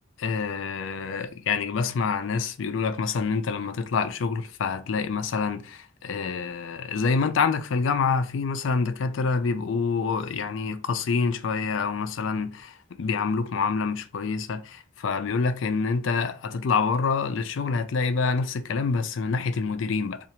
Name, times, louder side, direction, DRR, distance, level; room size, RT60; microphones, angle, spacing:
voice 1, 0.2-20.2, left 5 dB, 65° left, 0.4 m, -27 dB
2.8 x 2.5 x 4.2 m
head